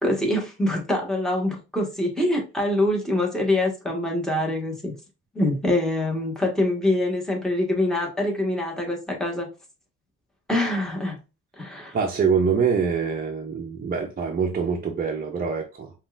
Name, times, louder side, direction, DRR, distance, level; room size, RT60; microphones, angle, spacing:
voice 1, 0.0-4.9 5.3-9.5 10.5-11.2 11.6-12.0, left 1 dB, ahead, 1.4 m, -24 dB
voice 2, 11.9-15.9, right 6 dB, 30° right, 0.6 m, -24 dB
5.3 x 2.4 x 2.5 m
cardioid pair, 90°, 30 cm